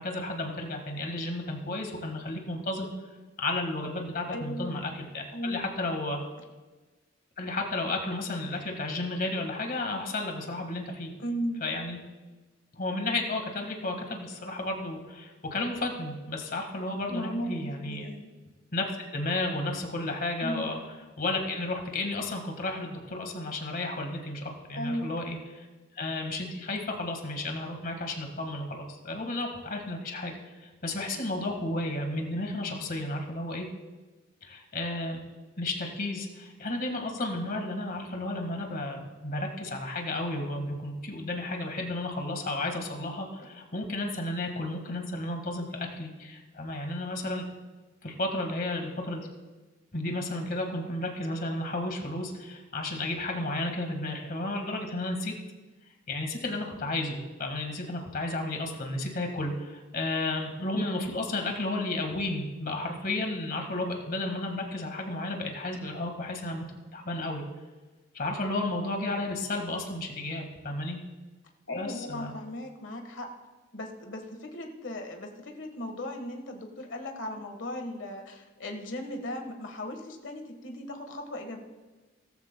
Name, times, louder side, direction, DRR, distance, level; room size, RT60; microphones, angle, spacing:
voice 1, 0.0-2.9 3.4-6.2 7.4-11.1 11.6-12.0 12.7-18.1 18.7-20.8 21.2-25.7 26.0-33.7 34.4-35.2 35.6-47.4 48.0-49.2 49.9-55.3 56.1-66.6 66.9-67.4 68.1-71.0 71.8-72.3, left 2 dB, 50° left, 3 dB, 1.7 m, -33 dB
voice 2, 4.3-4.8 5.3-5.6 11.2-11.7 17.1-18.3 20.4-20.8 24.8-25.1 71.7-73.3 73.7-81.6, left 1 dB, 90° left, 4 dB, 1.4 m, -36 dB
17.5 x 14.0 x 2.2 m, 1.2 s
head